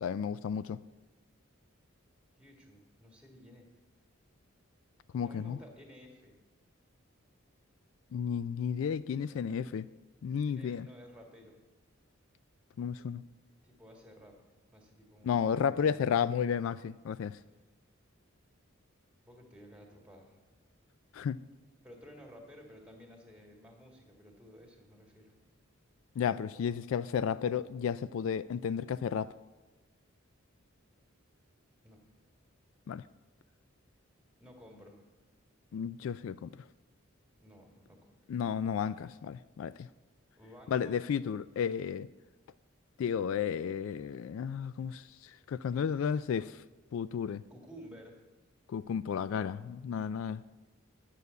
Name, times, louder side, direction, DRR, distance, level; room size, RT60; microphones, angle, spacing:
voice 1, 0.0-0.8 5.1-5.6 8.1-9.8 10.2-10.9 12.8-13.2 15.2-17.4 21.1-21.4 26.2-29.3 32.9-33.0 35.7-36.5 38.3-39.9 40.7-42.1 43.0-46.6 46.9-47.4 48.7-50.4, left 7 dB, 70° left, 0.3 m, -33 dB
voice 2, 2.4-3.7 5.2-6.4 9.1-9.7 10.5-11.6 13.6-14.3 14.7-16.2 19.3-20.4 21.8-25.4 31.8-32.0 34.4-35.0 37.4-38.2 40.4-41.0 47.5-48.2 49.3-49.6, equal, 5° right, 1.9 m, -54 dB
9.6 x 6.8 x 8.0 m
head